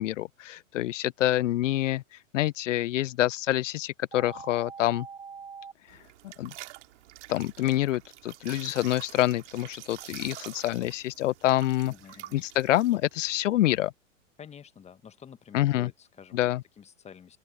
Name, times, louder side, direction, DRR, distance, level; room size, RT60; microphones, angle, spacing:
voice 1, 0.0-2.0 2.3-5.1 6.2-6.5 7.3-11.9 12.3-13.9 15.5-15.9 16.3-16.6, left 15 dB, 65° left, 0.5 m, -27 dB
sound 1, 4.1-5.7, right 6 dB, 10° right, 0.8 m, -43 dB
sound 2, 5.9-13.9, right 15 dB, 60° right, 2.6 m, -47 dB
voice 2, 11.9-12.4 14.4-16.5 16.8-17.4, left 7 dB, 15° left, 1.5 m, -49 dB
open air
hypercardioid pair, 110°, 41 cm